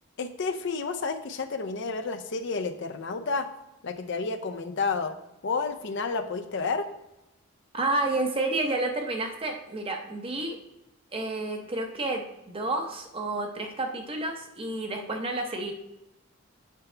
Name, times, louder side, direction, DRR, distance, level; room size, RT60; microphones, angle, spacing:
voice 1, 0.2-3.5 3.8-5.1 5.4-6.9, left 4 dB, 55° left, 8 dB, 0.5 m, -30 dB
voice 2, 7.7-10.6 11.1-15.7, right 2 dB, 25° right, 3 dB, 0.7 m, -30 dB
8.1 x 5.4 x 3.3 m, 0.91 s
head